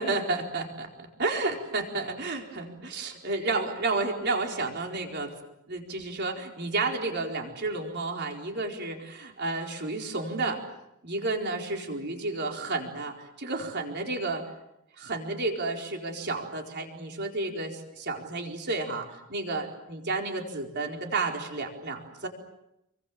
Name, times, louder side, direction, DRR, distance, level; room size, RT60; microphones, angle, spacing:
voice 1, 0.0-5.3 5.7-10.6 11.0-14.4 15.0-22.3, right 3 dB, 50° right, 2 dB, 4.4 m, -31 dB
28.0 x 24.5 x 7.5 m, 0.84 s
head